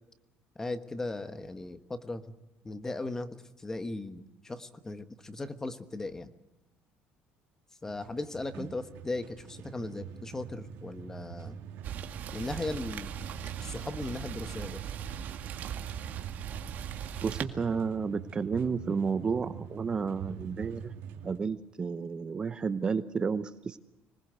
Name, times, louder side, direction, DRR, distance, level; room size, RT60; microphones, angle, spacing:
voice 1, 0.5-2.2 2.6-6.3 7.8-11.6 12.3-13.3 13.6-14.8, left 2 dB, 15° left, 10 dB, 1.2 m, -37 dB
sound 1, 7.9-21.4, right 8 dB, 75° right, 2.6 m, -45 dB
Rain, 11.8-17.4, right 9 dB, 45° right, 2.0 m, -39 dB
voice 2, 17.2-20.9 21.2-23.8, right 5 dB, 25° right, 11 dB, 0.8 m, -31 dB
25.5 x 20.0 x 8.0 m, 1.1 s
cardioid pair, 155°, 4 cm